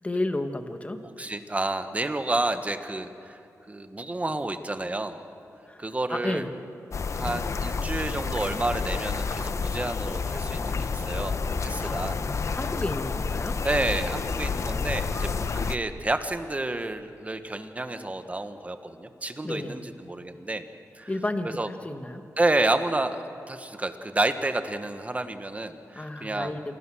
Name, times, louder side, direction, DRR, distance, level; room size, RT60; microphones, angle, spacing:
voice 1, 0.0-1.0 5.7-5.8 6.1-6.5 11.8-13.6 19.4-19.8 21.1-22.2 25.9-26.7, left 2 dB, 20° left, 7 dB, 1.6 m, -32 dB
voice 2, 1.2-3.4 3.7-5.2 5.8-6.5 7.1-12.2 13.6-20.7 20.9-21.1 21.6-21.7 22.4-26.5, right 2 dB, 25° right, 8 dB, 1.4 m, -30 dB
Shoreline Curlew Oyster-Catcher, 6.9-15.8, left 5 dB, 55° left, 0.8 m, -29 dB
28.0 x 18.5 x 6.3 m, 2.7 s
wide cardioid pair, 85°, 6 cm